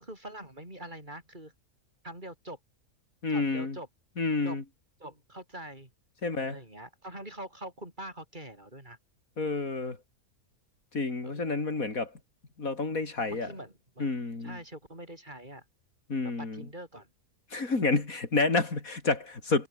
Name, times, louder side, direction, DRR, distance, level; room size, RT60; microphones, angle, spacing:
voice 1, 0.0-1.5 2.0-2.6 3.3-3.9 4.4-4.6 5.0-5.9 6.5-9.0 11.2-11.6 13.3-14.1 14.4-15.6 16.2-17.1, right 1 dB, 30° right, 7.8 m, -44 dB
voice 2, 3.2-3.8 4.2-4.6 6.2-6.6 9.4-10.0 10.9-12.1 12.6-13.5 14.0-14.6 16.1-16.6 17.5-19.7, left 3 dB, 65° left, 3.9 m, -29 dB
omnidirectional pair, 1.6 m